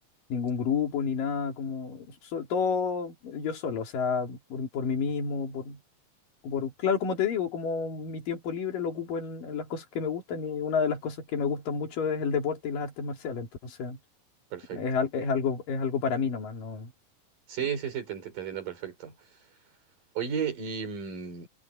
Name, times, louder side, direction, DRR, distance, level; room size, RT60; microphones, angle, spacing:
voice 1, 0.3-5.8 6.4-14.0 14.7-16.9, left 6 dB, 80° left, 4.6 m, -30 dB
voice 2, 14.5-14.8 17.5-19.1 20.2-21.5, right 7 dB, 80° right, 5.8 m, -33 dB
omnidirectional pair, 3.8 m